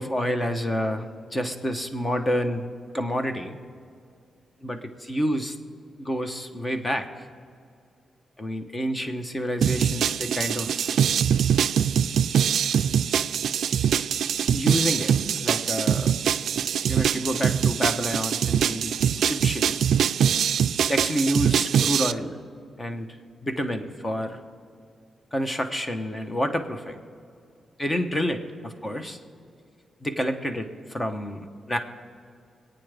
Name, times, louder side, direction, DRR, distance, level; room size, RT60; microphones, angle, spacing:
voice 1, 0.0-2.7 2.9-3.6 4.6-5.6 6.0-7.1 8.4-11.1 14.5-16.1 16.9-19.9 20.9-22.4 22.8-23.1 23.4-24.4 25.3-27.0 27.8-29.2 30.0-31.8, equal, 15° left, 7 dB, 0.9 m, -29 dB
sound 1, 9.6-22.1, right 8 dB, 70° right, 0.3 m, -23 dB
26.0 x 9.0 x 3.4 m, 2.4 s
wide cardioid pair, 170°, 0 cm